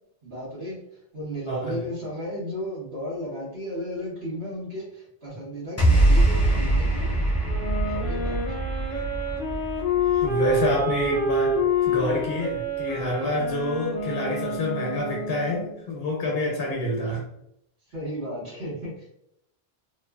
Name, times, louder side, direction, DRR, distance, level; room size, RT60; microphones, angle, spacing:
voice 1, 0.2-7.2 7.8-8.6 13.2-13.5 17.9-19.1, equal, 85° right, -10 dB, 1.4 m, -34 dB
voice 2, 1.5-1.8 8.9-9.1 10.1-17.2, left 1 dB, 75° left, -1 dB, 0.8 m, -27 dB
sound 1, 5.8-12.2, right 1 dB, 25° left, 0.3 m, -24 dB
Wind instrument woodwind instrument, 7.4-15.7, left 2 dB, 40° left, 0.9 m, -28 dB
2.8 x 2.1 x 2.2 m, 0.75 s
omnidirectional pair, 1.0 m